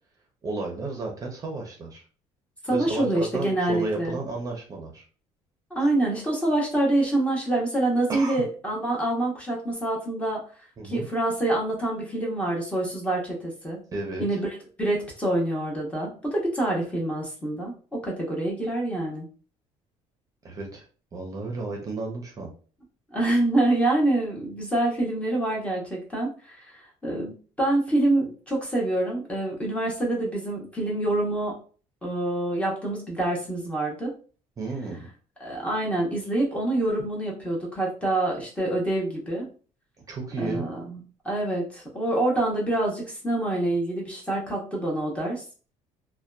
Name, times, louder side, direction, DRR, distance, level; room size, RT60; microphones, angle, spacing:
voice 1, 0.4-2.0 2.7-5.0 8.1-8.4 10.8-11.1 13.9-14.4 20.4-20.9 21.1-22.5 34.6-35.0 40.1-40.7, right 3 dB, 30° right, 1 dB, 0.6 m, -33 dB
voice 2, 2.6-4.2 5.7-10.4 10.8-13.8 14.2-14.5 14.8-19.3 23.1-31.6 32.0-34.1 35.4-39.5 40.4-45.4, right 1 dB, 10° left, -2 dB, 0.8 m, -26 dB
2.6 x 2.2 x 2.2 m, 0.38 s
cardioid pair, 135°, 12 cm